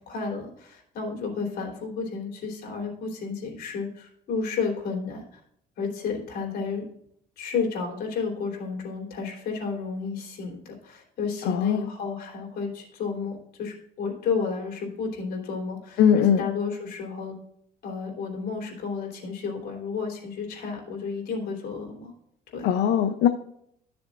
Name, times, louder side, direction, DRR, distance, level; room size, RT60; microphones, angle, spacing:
voice 1, 0.1-5.4 5.8-6.8 7.4-17.3 17.8-22.1 22.5-22.7, left 5 dB, 65° left, 0 dB, 3.3 m, -32 dB
voice 2, 11.5-11.9 16.0-16.4 22.6-23.3, left 8 dB, 80° left, 7 dB, 0.6 m, -20 dB
13.0 x 6.9 x 2.5 m, 0.72 s
cardioid pair, 110°, 17 cm